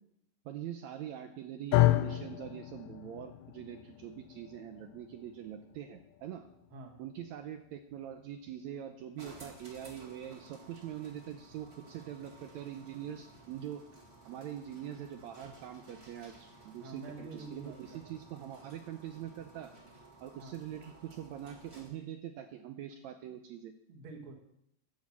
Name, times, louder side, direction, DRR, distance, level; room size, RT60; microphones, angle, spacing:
voice 1, 0.4-6.4 7.0-13.8 14.2-19.7 20.2-23.7, right 10 dB, 80° right, 7 dB, 1.6 m, -43 dB
sound 1, 1.7-10.0, left 16 dB, 80° left, 2.1 m, -34 dB
sound 2, 9.2-22.1, right 2 dB, 25° right, 1.5 m, -56 dB
voice 2, 16.8-18.1 20.4-20.6 23.9-24.3, right 3 dB, 45° right, 2 dB, 2.2 m, -47 dB
10.5 x 7.4 x 7.3 m, 0.76 s
omnidirectional pair, 3.9 m